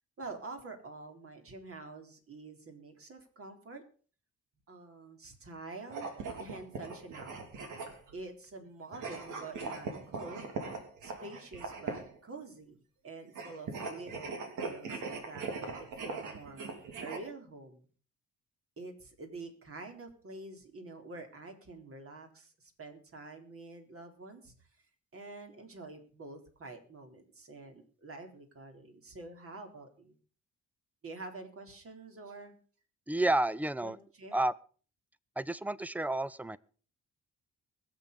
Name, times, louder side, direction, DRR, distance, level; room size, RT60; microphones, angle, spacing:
voice 1, 0.2-3.8 4.7-6.1 6.4-7.7 8.1-10.5 11.0-12.8 13.0-15.7 16.0-17.9 18.8-24.5 25.1-30.2 31.0-32.6 33.8-34.4, right 3 dB, 45° right, 4 dB, 3.9 m, -47 dB
sound 1, 5.8-8.2 8.9-12.2 13.3-17.2, right 4 dB, 80° right, 3.1 m, -40 dB
voice 2, 33.1-34.0 34.3-34.5 35.4-36.6, right 1 dB, 5° right, 18 dB, 0.6 m, -30 dB
21.5 x 7.6 x 5.3 m, 0.41 s
cardioid pair, 90°, 30 cm